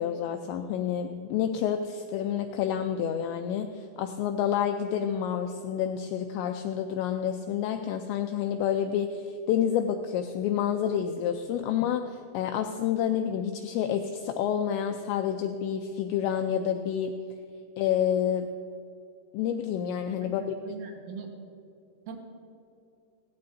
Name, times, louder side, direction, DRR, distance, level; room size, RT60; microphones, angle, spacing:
voice 1, 0.0-17.2 17.8-18.5 19.3-20.6, left 9 dB, 85° left, 6 dB, 2.5 m, -29 dB
voice 2, 20.2-21.4 22.1-22.2, right 5 dB, 85° right, 2 dB, 3.6 m, -41 dB
17.0 x 16.0 x 2.6 m, 2.6 s
omnidirectional pair, 5.6 m